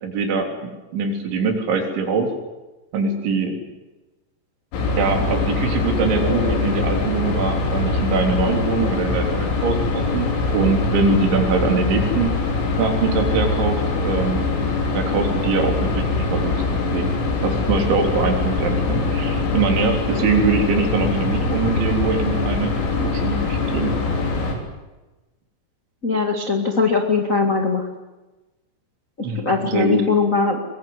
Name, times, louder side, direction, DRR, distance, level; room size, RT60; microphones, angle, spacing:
voice 1, 0.0-2.3 2.9-3.6 5.0-12.3 12.8-14.7 14.9-16.6 16.9-17.1 17.4-23.9 29.2-30.0, right 4 dB, 70° right, 3 dB, 5.9 m, -23 dB
sound 1, 4.7-24.6, left 3 dB, 90° left, 6.2 m, -23 dB
voice 2, 26.0-27.9 29.2-30.6, left 4 dB, 50° left, 3 dB, 0.9 m, -20 dB
22.5 x 22.0 x 9.7 m, 1.1 s
omnidirectional pair, 5.5 m